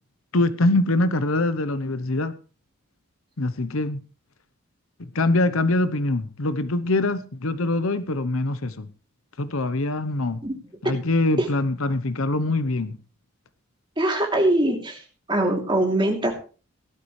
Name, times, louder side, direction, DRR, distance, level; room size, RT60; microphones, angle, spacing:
voice 1, 0.3-2.3 3.4-4.0 5.0-8.9 9.4-10.4 10.8-13.0, left 2 dB, 70° left, 0.9 m, -23 dB
voice 2, 14.0-15.0 15.3-16.3, right 1 dB, 20° right, 3.0 m, -22 dB
17.5 x 12.0 x 3.2 m
head